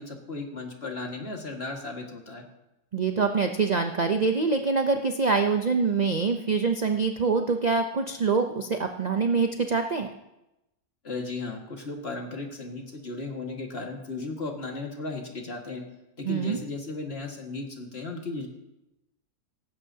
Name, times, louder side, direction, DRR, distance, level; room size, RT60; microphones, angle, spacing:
voice 1, 0.0-2.4 11.0-15.8 16.2-18.5, left 3 dB, 40° left, 1 dB, 2.0 m, -35 dB
voice 2, 2.9-10.1 16.2-16.6, right 4 dB, 55° right, 5 dB, 0.4 m, -25 dB
18.0 x 15.5 x 2.8 m, 0.92 s
omnidirectional pair, 1.7 m